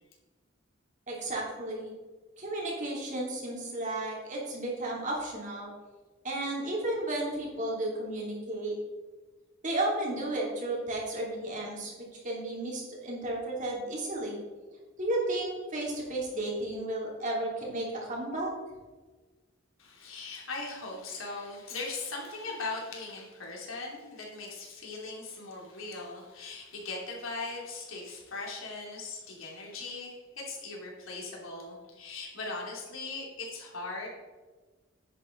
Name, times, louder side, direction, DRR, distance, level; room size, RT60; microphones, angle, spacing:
voice 1, 1.1-1.9 2.4-5.7 6.2-8.7 9.6-14.4 15.0-18.5, right 1 dB, 40° right, -2 dB, 2.9 m, -33 dB
voice 2, 19.8-34.1, left 3 dB, 85° left, -2 dB, 3.0 m, -39 dB
10.0 x 9.0 x 3.9 m, 1.3 s
head